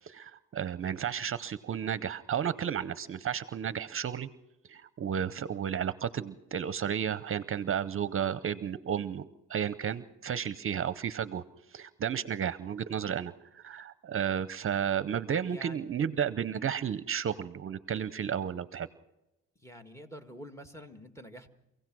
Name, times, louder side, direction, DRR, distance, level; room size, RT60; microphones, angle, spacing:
voice 1, 0.0-4.3 4.7-11.4 11.7-18.9, right 8 dB, 45° right, 15 dB, 0.7 m, -33 dB
voice 2, 15.5-15.8 19.6-21.5, equal, 10° left, 6 dB, 1.9 m, -47 dB
25.5 x 16.5 x 6.2 m, 0.93 s
cardioid pair, 90°, 30 cm